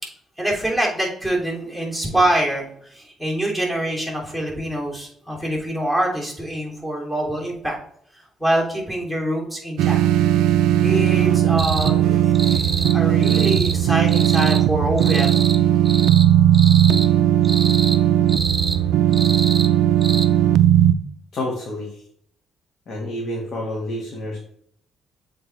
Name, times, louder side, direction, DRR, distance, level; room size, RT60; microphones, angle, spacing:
voice 1, 0.4-7.8 8.1-10.2 10.8-15.4, right 1 dB, 10° left, -3 dB, 2.9 m, -25 dB
sound 1, 9.8-20.9, right 11 dB, 85° right, 0.3 m, -17 dB
sound 2, 11.6-11.9 12.3-13.0 13.2-13.8 14.1-14.6 15.0-15.6 15.8-16.3 16.5-17.1 17.4-18.0 18.3-18.8 19.1-19.7 20.0-20.3, right 3 dB, 25° right, 0.8 m, -27 dB
voice 2, 21.3-22.0 22.9-24.4, left 1 dB, 60° left, -2 dB, 1.7 m, -29 dB
7.6 x 4.4 x 3.3 m, 0.66 s
cardioid pair, 80°, 0 cm